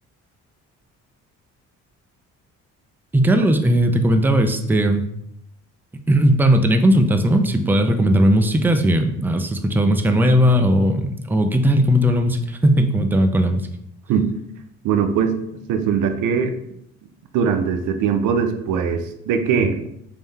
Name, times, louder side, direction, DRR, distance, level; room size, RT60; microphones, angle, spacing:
voice 1, 3.1-5.0 6.1-13.6, equal, 5° right, 7 dB, 0.3 m, -17 dB
voice 2, 14.8-15.4 15.7-16.5 17.3-19.9, right 6 dB, 85° right, 7 dB, 0.5 m, -21 dB
3.4 x 2.7 x 3.3 m, 0.75 s
cardioid pair, 90°, 30 cm